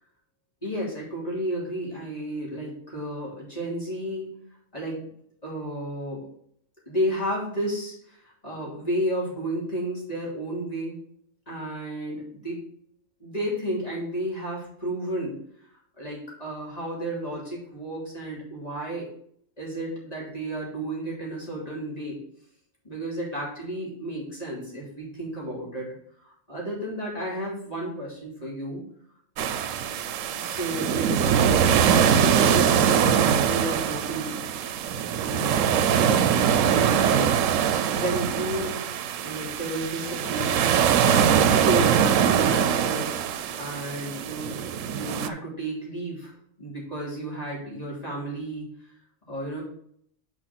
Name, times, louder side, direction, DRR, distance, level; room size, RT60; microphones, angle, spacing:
voice 1, 0.6-4.3 4.7-5.0 5.4-6.3 6.9-11.0 11.5-12.6 13.2-15.4 16.0-19.1 19.6-22.2 22.8-25.9 26.2-28.8 30.3-31.8 32.1-34.4 35.2-37.3 37.9-38.8 39.2-43.1 43.5-46.3 46.6-48.7 49.3-49.6, right 1 dB, 30° left, -4 dB, 3.3 m, -32 dB
sound 1, 29.4-45.3, right 8 dB, 90° right, 1.0 m, -22 dB
6.4 x 5.1 x 6.0 m, 0.66 s
omnidirectional pair, 1.3 m